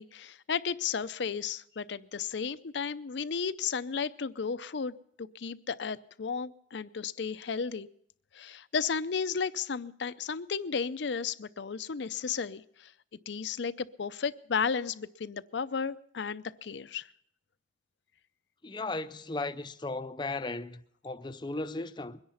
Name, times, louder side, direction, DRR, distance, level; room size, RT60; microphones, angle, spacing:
voice 1, 0.0-7.9 8.3-12.9 13.3-17.1, left 6 dB, 70° left, 0.5 m, -34 dB
voice 2, 18.6-22.2, left 2 dB, 25° left, 0.5 m, -36 dB
22.0 x 10.5 x 5.6 m
head